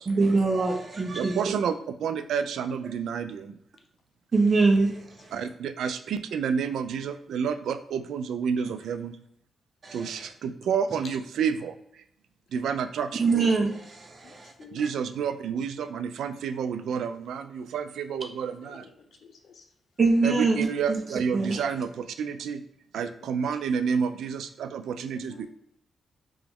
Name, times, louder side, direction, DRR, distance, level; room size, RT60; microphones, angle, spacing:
voice 1, 0.1-1.6 4.3-5.4 9.8-10.3 13.1-14.9 20.0-21.6, right 3 dB, 40° right, 4 dB, 0.7 m, -25 dB
voice 2, 1.1-1.7 2.0-3.6 5.3-9.2 9.9-12.0 12.5-13.2 14.7-18.9 20.2-22.6 22.9-25.5, right 6 dB, 85° right, 11 dB, 0.3 m, -30 dB
voice 3, 12.5-12.9 14.2-14.8 18.6-19.7 23.2-23.3 23.6-23.8 24.9-25.5, left 5 dB, 70° left, 4 dB, 0.7 m, -51 dB
3.3 x 3.0 x 3.5 m, 0.73 s
cardioid pair, 90°, 0 cm